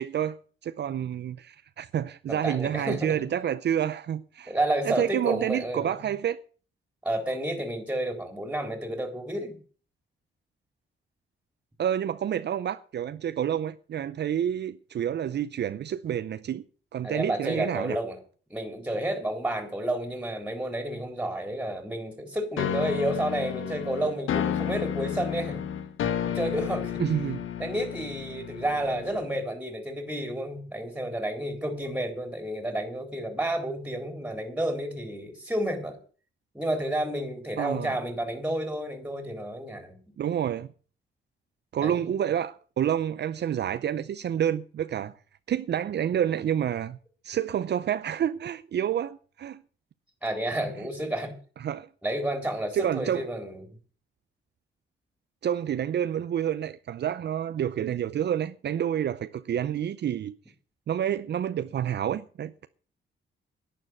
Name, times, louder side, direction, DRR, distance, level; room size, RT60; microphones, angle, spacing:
voice 1, 0.0-4.5 4.8-6.4 11.8-16.6 16.9-18.0 27.0-27.5 37.6-38.0 40.2-40.7 41.7-45.1 45.5-47.0 47.2-49.6 51.6-51.9 52.7-53.2 55.4-60.4 60.9-62.7, right 10 dB, 60° right, 0.6 m, -29 dB
voice 2, 2.3-3.3 4.5-6.1 7.0-9.6 17.0-18.2 18.5-25.6 26.3-27.0 27.6-36.0 36.5-40.0 41.7-42.1 50.2-51.4 52.0-53.6, right 1 dB, 5° right, 3.8 m, -31 dB
sound 1, 22.6-29.4, left 9 dB, 85° left, 1.3 m, -32 dB
11.0 x 10.0 x 7.8 m
cardioid pair, 110°, 20 cm